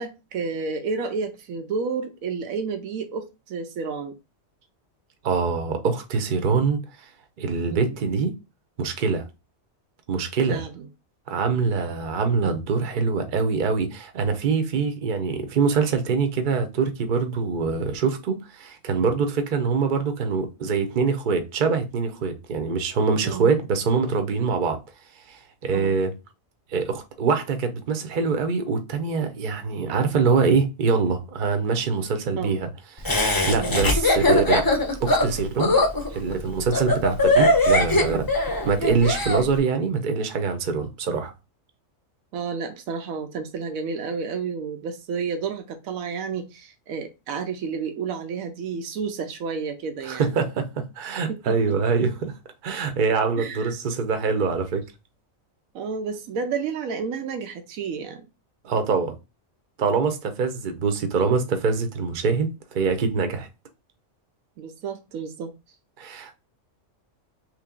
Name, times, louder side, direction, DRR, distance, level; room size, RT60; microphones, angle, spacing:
voice 1, 0.0-4.2 7.7-8.0 10.5-10.9 23.2-23.5 25.7-26.0 32.4-32.6 33.6-34.0 42.3-50.3 51.3-51.6 53.4-53.7 55.7-58.2 64.6-65.5, right 5 dB, 90° right, 1.1 m, -31 dB
voice 2, 5.2-7.1 7.4-8.3 8.8-9.3 10.1-10.6 11.3-24.8 25.3-26.1 26.7-32.7 33.0-34.7 35.0-35.8 36.1-38.3 38.6-41.3 50.0-52.3 52.6-54.9 58.6-59.1 59.8-63.5 66.0-66.4, right 5 dB, 45° right, 0.7 m, -24 dB
Laughter, 33.0-39.4, left 1 dB, 25° left, 0.4 m, -20 dB
3.3 x 3.0 x 3.7 m
omnidirectional pair, 1.4 m